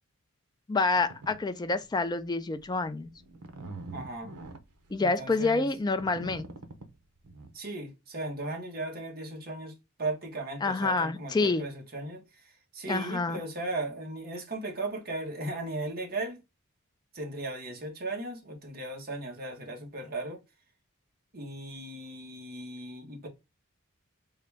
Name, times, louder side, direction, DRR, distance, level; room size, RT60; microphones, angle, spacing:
voice 1, 0.7-3.1 4.9-6.5 10.6-11.7 12.9-13.4, left 3 dB, 20° left, 0.3 m, -28 dB
sound 1, 0.9-1.4 1.8-2.1 2.6-7.5, right 2 dB, 85° right, 0.7 m, -44 dB
voice 2, 3.9-4.4 5.0-5.7 7.5-9.7 10.0-16.4 17.1-20.4 21.3-23.3, right 2 dB, 40° right, 1.1 m, -37 dB
3.8 x 2.3 x 3.3 m
head